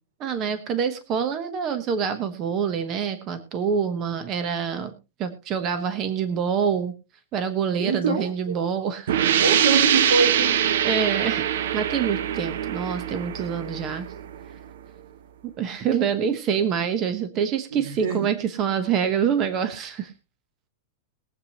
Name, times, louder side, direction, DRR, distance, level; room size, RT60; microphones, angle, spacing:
voice 1, 0.2-4.9 5.2-6.9 7.3-9.2 10.8-11.5 11.7-14.1 15.6-20.1, right 7 dB, 25° right, 10 dB, 1.1 m, -26 dB
voice 2, 7.8-8.6 9.4-10.5 17.7-18.2, right 4 dB, 85° right, 7 dB, 4.3 m, -24 dB
sound 1, 9.1-14.5, right 10 dB, 70° right, 0.8 m, -23 dB
21.5 x 8.2 x 3.0 m, 0.28 s
supercardioid pair, 170°, 0 cm